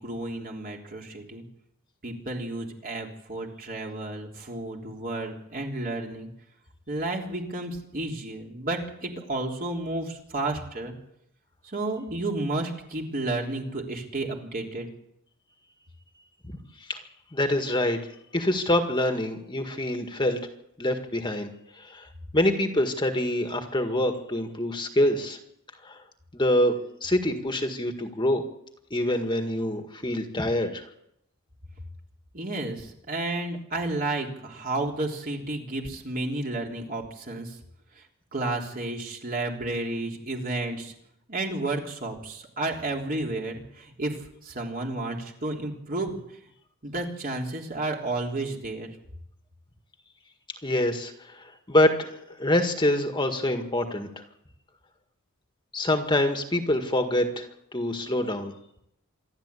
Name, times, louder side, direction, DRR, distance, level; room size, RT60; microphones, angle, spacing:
voice 1, 0.0-1.4 2.0-6.3 6.9-11.0 11.6-14.9 32.3-37.6 38.0-38.1 38.3-40.9 41.3-46.2 46.8-48.9, right 2 dB, 40° right, 1 dB, 3.5 m, -32 dB
voice 2, 17.3-18.0 18.3-20.4 20.8-21.5 21.8-25.4 25.8-26.0 26.3-28.4 28.9-30.8 50.6-54.1 55.7-57.5 57.7-58.5, left 1 dB, 20° left, 5 dB, 1.8 m, -25 dB
26.5 x 12.0 x 8.4 m, 0.78 s
head